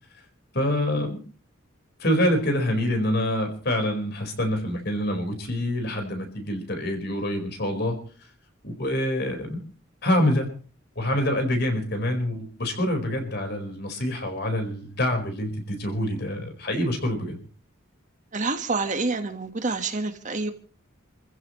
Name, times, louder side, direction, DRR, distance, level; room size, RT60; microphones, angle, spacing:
voice 1, 0.5-1.2 2.0-8.0 8.6-9.6 10.0-10.5 10.9-17.4, left 1 dB, 55° left, 4 dB, 4.8 m, -26 dB
voice 2, 18.3-20.5, right 3 dB, 40° right, 7 dB, 1.5 m, -27 dB
28.5 x 15.0 x 3.2 m, 0.39 s
head